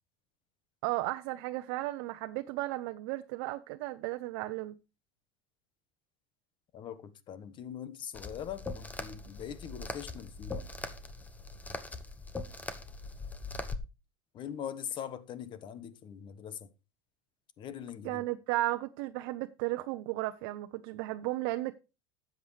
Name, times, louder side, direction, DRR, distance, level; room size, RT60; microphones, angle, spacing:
voice 1, 0.8-4.7 18.0-21.7, right 17 dB, 75° right, 0.7 m, -34 dB
voice 2, 6.7-10.6 14.3-16.7 17.6-18.2, left 9 dB, 45° left, 1.3 m, -42 dB
sound 1, 8.1-13.8, left 3 dB, 15° left, 1.0 m, -41 dB
12.5 x 8.0 x 3.3 m
supercardioid pair, 125°, 12 cm